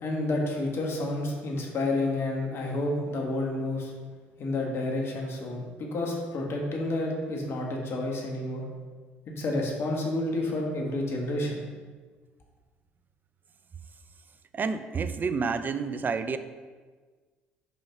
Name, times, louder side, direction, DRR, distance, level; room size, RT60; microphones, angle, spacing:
voice 1, 0.0-3.9 4.4-8.6 9.4-11.6, left 2 dB, 55° left, 0 dB, 1.5 m, -30 dB
voice 2, 14.5-16.4, right 5 dB, 40° right, 11 dB, 0.5 m, -29 dB
5.5 x 5.0 x 5.2 m, 1.4 s
hypercardioid pair, 60°, 5 cm